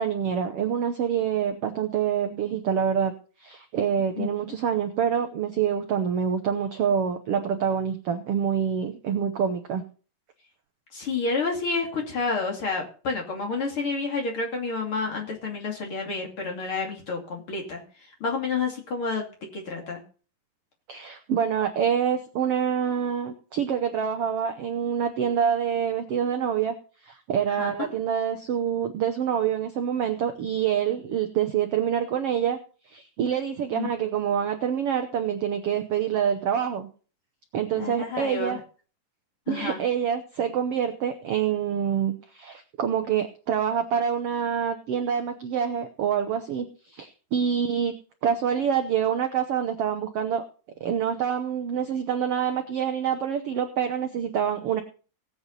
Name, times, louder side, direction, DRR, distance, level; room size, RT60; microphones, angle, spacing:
voice 1, 0.0-3.1 3.4-9.8 20.9-26.7 27.0-32.6 32.9-36.9 37.5-38.6 39.5-50.4 50.8-54.8, right 8 dB, 70° right, 6 dB, 1.4 m, -26 dB
voice 2, 10.9-19.2 19.5-20.0 27.5-27.9 33.7-33.9 37.7-38.6 39.5-39.8, left 4 dB, 40° left, 1 dB, 3.1 m, -30 dB
18.5 x 8.2 x 4.1 m, 0.38 s
omnidirectional pair, 3.9 m